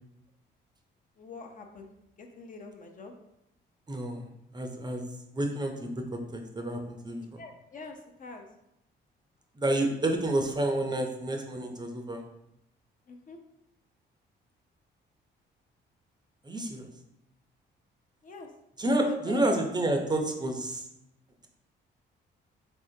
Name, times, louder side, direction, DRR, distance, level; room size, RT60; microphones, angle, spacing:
voice 1, 1.2-1.9 2.2-3.1 7.4-8.5 13.1-13.4 18.2-18.5 19.0-19.5, left 2 dB, 40° left, 4 dB, 0.5 m, -43 dB
voice 2, 3.9-4.2 4.5-5.0 5.3-6.0 6.3-7.4 9.6-12.2 16.4-16.9 18.8-20.8, right 1 dB, 20° right, 4 dB, 0.5 m, -29 dB
3.5 x 3.3 x 2.7 m, 0.82 s
cardioid pair, 90°, 20 cm